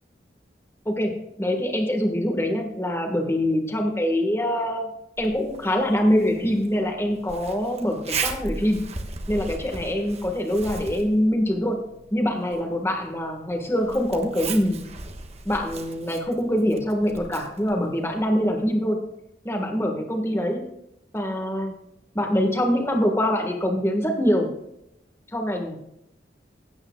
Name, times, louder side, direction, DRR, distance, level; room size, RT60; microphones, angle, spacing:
voice 1, 0.8-4.9 5.2-8.9 9.3-11.8 12.1-14.8 15.4-19.0 19.4-20.6 21.1-21.8 22.1-24.5 25.3-25.8, equal, 15° left, 3 dB, 1.4 m, -24 dB
Zipper (clothing), 5.2-18.7, right 4 dB, 35° right, 1.2 m, -38 dB
16.0 x 8.7 x 2.3 m, 0.82 s
head